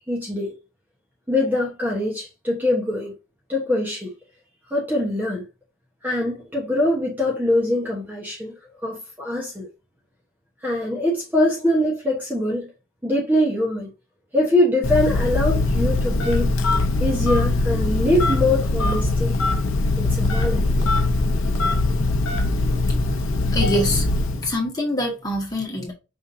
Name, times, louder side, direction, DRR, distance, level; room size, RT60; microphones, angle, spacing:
voice 1, 0.1-0.6 1.3-3.1 3.5-4.1 4.7-5.5 6.0-8.5 8.8-9.7 10.6-12.7 13.0-13.9 14.3-16.5 17.0-19.4 20.0-20.9, left 1 dB, 10° right, 1.0 m, -23 dB
Telephone, 14.8-24.5, left 2 dB, 85° left, 0.7 m, -21 dB
voice 2, 23.5-24.1 24.4-25.9, left 1 dB, 20° left, 1.7 m, -24 dB
5.3 x 3.6 x 2.7 m
head